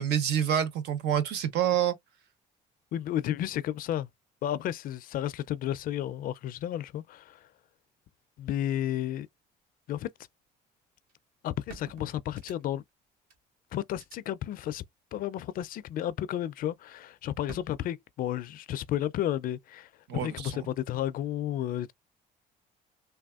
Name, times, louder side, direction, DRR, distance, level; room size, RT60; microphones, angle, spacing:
voice 1, 0.0-1.9 20.1-20.5, right 9 dB, 85° right, 0.8 m, -27 dB
voice 2, 2.9-4.1 4.4-7.4 8.4-9.3 9.9-10.1 11.4-12.8 13.7-14.8 15.1-21.9, left 12 dB, 55° left, 0.4 m, -32 dB
sound 1, 11.1-11.2 11.7-12.9 13.3-13.4 13.9-14.2 15.5-16.0 17.5-17.6, right 5 dB, 60° right, 1.2 m, -49 dB
3.4 x 2.2 x 2.3 m
cardioid pair, 110°, 17 cm